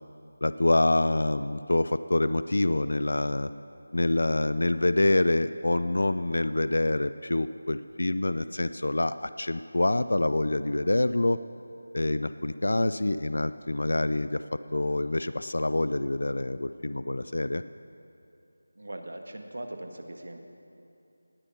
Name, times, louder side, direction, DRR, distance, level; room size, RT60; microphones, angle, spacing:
voice 1, 0.4-3.5 3.9-11.4 11.9-17.6, left 2 dB, 65° left, 13 dB, 0.4 m, -26 dB
voice 2, 18.8-20.4, right 1 dB, 70° right, 5 dB, 1.5 m, -40 dB
18.5 x 8.9 x 5.5 m, 2.8 s
figure-of-eight pair, 180°, 0 cm